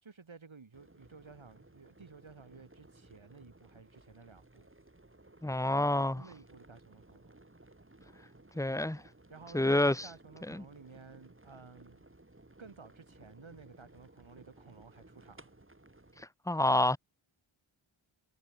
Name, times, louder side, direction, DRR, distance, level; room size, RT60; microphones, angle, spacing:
voice 1, 0.0-4.7 6.0-7.4 9.3-12.0 12.6-15.5, right 4 dB, 65° right, 6.4 m, -54 dB
sound 1, 0.7-16.2, right 2 dB, 25° right, 6.4 m, -59 dB
voice 2, 5.4-6.2 8.5-9.0 9.5-10.1 10.5-10.6 16.5-17.0, left 1 dB, 5° left, 1.5 m, -28 dB
cardioid pair, 50°, 50 cm